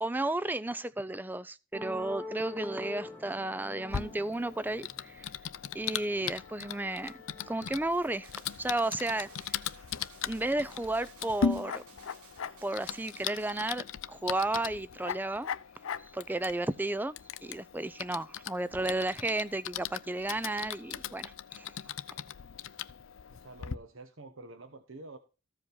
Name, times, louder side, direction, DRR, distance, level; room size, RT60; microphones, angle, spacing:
voice 1, 0.0-5.3 5.7-7.2 7.5-9.5 10.2-11.8 12.6-15.5 16.0-17.1 17.4-21.7, right 2 dB, 10° right, 0.4 m, -33 dB
sound 1, 1.7-5.8 6.2-7.8, left 2 dB, 10° left, 1.2 m, -45 dB
Typing, 3.9-23.7, left 7 dB, 65° left, 0.5 m, -39 dB
voice 2, 6.0-6.3 23.3-25.2, right 2 dB, 60° right, 1.1 m, -48 dB
sound 2, 8.2-13.8, right 5 dB, 90° right, 2.0 m, -57 dB
14.5 x 5.0 x 5.4 m
head